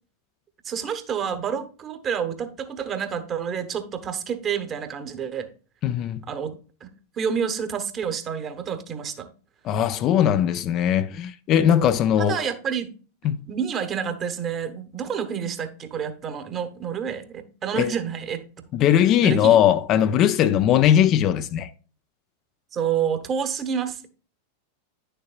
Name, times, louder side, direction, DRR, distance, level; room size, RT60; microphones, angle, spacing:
voice 1, 0.6-5.5 6.3-6.9 7.2-9.3 11.7-11.9 12.2-12.9 13.5-18.5 19.2-19.6 22.7-24.1, right 7 dB, 30° right, 1.2 m, -29 dB
voice 2, 5.8-6.2 9.6-12.4 13.2-13.4 17.8-17.9 18.7-21.7, left 10 dB, 35° left, 0.4 m, -19 dB
10.0 x 6.7 x 2.4 m
figure-of-eight pair, 90°, 0 cm